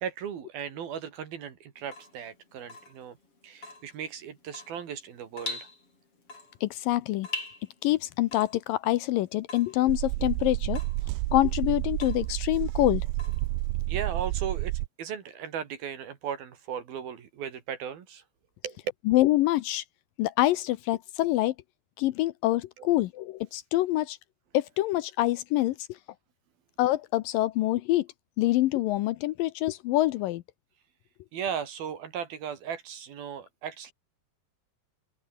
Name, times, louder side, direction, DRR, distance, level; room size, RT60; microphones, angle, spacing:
voice 1, 0.0-3.2 3.4-5.7 13.9-18.2 18.6-18.8 22.8-22.9 31.3-33.9, right 8 dB, 65° right, 4.1 m, -37 dB
Water tap faucet / Drip, 1.8-14.0, left 3 dB, 35° left, 7.5 m, -44 dB
voice 2, 6.6-7.3 7.8-10.8 11.3-13.0 19.1-19.8 20.2-21.5 22.0-24.2 24.5-25.8 26.8-28.1 28.4-30.4, left 16 dB, 75° left, 2.1 m, -25 dB
sound 1, 9.9-14.9, right 20 dB, 90° right, 2.7 m, -30 dB
omnidirectional pair, 4.6 m